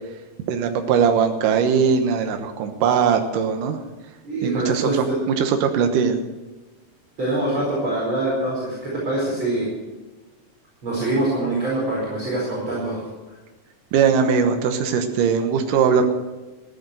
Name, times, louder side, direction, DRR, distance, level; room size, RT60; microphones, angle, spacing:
voice 1, 0.5-3.8 4.4-6.2 13.9-16.1, right 6 dB, 80° right, 6 dB, 2.8 m, -20 dB
voice 2, 4.2-5.1 7.2-9.7 10.8-13.1, right 2 dB, 35° right, -6 dB, 5.4 m, -24 dB
14.5 x 11.0 x 7.9 m, 1.2 s
omnidirectional pair, 3.7 m